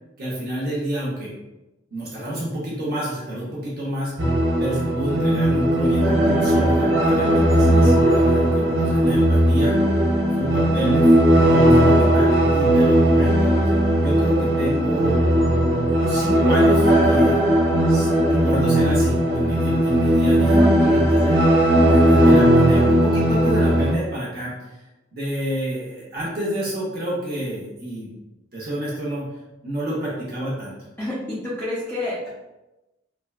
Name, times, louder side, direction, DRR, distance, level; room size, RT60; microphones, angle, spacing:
voice 1, 0.2-1.3 1.9-4.1 4.6-10.1 10.4-15.2 15.9-17.4 17.9-20.6 20.9-21.3 21.8-24.8 25.1-28.1 28.5-29.3 29.6-30.7, equal, 50° right, -7 dB, 0.8 m, -29 dB
sound 1, 4.2-23.9, right 1 dB, 80° right, 0.6 m, -17 dB
voice 2, 20.6-21.0 31.0-32.3, left 1 dB, 10° left, -9 dB, 0.5 m, -29 dB
3.4 x 2.2 x 2.3 m, 1.0 s
head